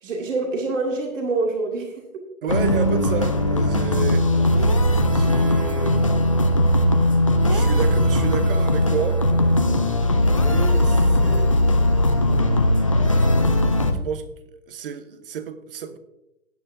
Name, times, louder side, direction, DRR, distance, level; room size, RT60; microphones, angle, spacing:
voice 1, 0.0-2.2, right 3 dB, 60° right, 2.4 m, -26 dB
voice 2, 2.4-4.3 4.5-4.7 5.1-6.2 7.4-9.5 10.3-11.6 14.0-14.3 14.7-16.0, right 7 dB, 40° right, 0.9 m, -31 dB
sound 1, 2.5-13.9, left 1 dB, 25° left, 0.4 m, -19 dB
16.5 x 9.2 x 2.6 m
hypercardioid pair, 155°, 42 cm